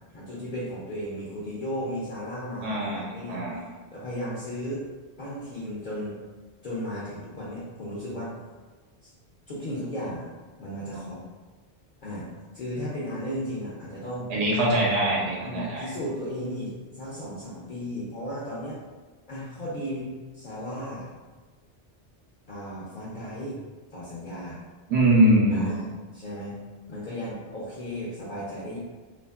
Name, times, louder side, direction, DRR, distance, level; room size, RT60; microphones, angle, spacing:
voice 1, 0.1-4.8 5.2-6.2 6.6-8.3 9.0-9.1 9.5-10.3 10.6-11.2 12.0-14.3 15.4-18.8 19.3-21.1 22.5-23.6 23.9-24.6 25.5-26.6 26.9-28.8, equal, 60° left, -7 dB, 0.6 m, -35 dB
voice 2, 2.6-3.6 14.3-15.8 24.9-25.7, right 1 dB, 75° right, -4 dB, 0.8 m, -22 dB
2.7 x 2.4 x 2.3 m, 1.4 s
omnidirectional pair, 1.1 m